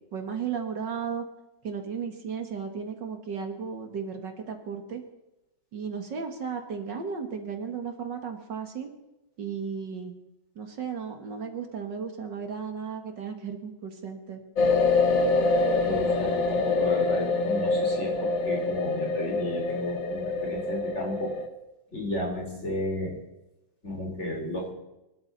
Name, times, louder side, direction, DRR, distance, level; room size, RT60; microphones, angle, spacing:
voice 1, 0.1-1.3 1.6-5.0 5.7-8.9 9.4-10.2 10.6-14.4, right 6 dB, 65° right, 5 dB, 2.4 m, -35 dB
sound 1, 14.6-21.5, left 3 dB, 70° left, 2.4 m, -25 dB
voice 2, 15.8-21.3 21.9-23.2 23.8-24.7, left 1 dB, 35° left, 0 dB, 4.4 m, -33 dB
24.0 x 13.0 x 4.1 m, 0.95 s
omnidirectional pair, 2.1 m